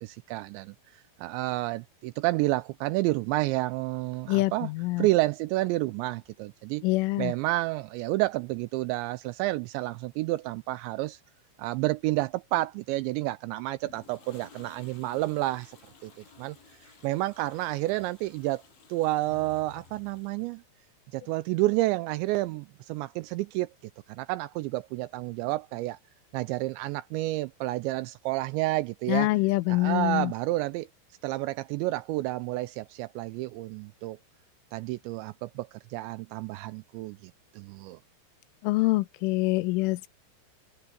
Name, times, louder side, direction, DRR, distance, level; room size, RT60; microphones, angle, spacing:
voice 1, 0.0-0.8 1.2-4.7 5.0-6.8 7.2-11.2 11.6-15.8 16.0-16.6 17.0-18.6 18.9-20.6 21.1-23.7 24.1-26.0 26.3-29.3 29.7-30.9 31.2-34.2 34.7-38.0, right 18 dB, 85° right, 2.6 m, -30 dB
voice 2, 4.3-5.1 6.8-7.3 29.1-30.3 38.6-40.1, left 20 dB, 90° left, 3.2 m, -25 dB
Toilet flush, 13.8-20.6, left 5 dB, 70° left, 8.7 m, -55 dB
omnidirectional pair, 5.6 m